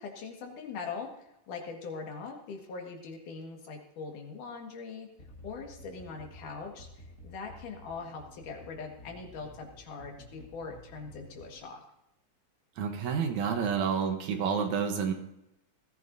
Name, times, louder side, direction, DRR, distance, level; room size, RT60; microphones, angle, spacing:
voice 1, 0.0-5.1 5.4-6.9 7.2-11.8, left 4 dB, 75° left, 2 dB, 3.3 m, -41 dB
sound 1, 5.2-11.6, left 1 dB, 35° left, 1.7 m, -52 dB
voice 2, 12.8-15.1, right 6 dB, 70° right, 5 dB, 2.3 m, -29 dB
20.0 x 14.5 x 2.7 m, 0.83 s
omnidirectional pair, 3.6 m